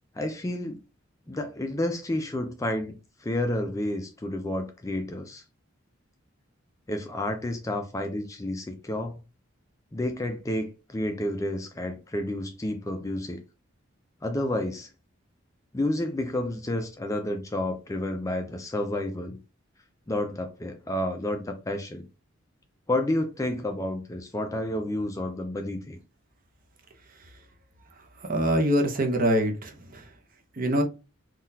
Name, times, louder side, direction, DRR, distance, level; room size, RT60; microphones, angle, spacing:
voice 1, 0.2-0.8 1.3-5.4 6.9-9.2 9.9-13.4 14.2-14.9 15.7-19.4 20.1-22.1 22.9-26.0, left 1 dB, 15° left, 0.3 m, -30 dB
voice 2, 28.3-30.0 30.6-30.8, equal, 40° right, 0.6 m, -24 dB
3.7 x 2.3 x 2.7 m
head